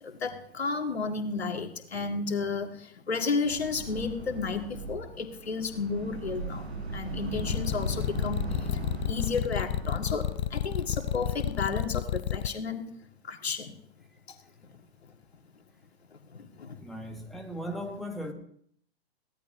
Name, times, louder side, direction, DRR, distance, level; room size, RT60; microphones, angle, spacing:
voice 1, 0.0-12.9 13.2-13.7 14.7-14.8 16.1-16.8, left 4 dB, 70° left, 1.9 m, -33 dB
sound 1, 3.4-11.8, right 3 dB, 75° right, 5.3 m, -38 dB
sound 2, 7.4-12.5, left 12 dB, 45° left, 0.6 m, -30 dB
voice 2, 16.8-18.3, equal, ahead, 1.5 m, -37 dB
22.5 x 17.0 x 2.7 m
figure-of-eight pair, 110°, 33 cm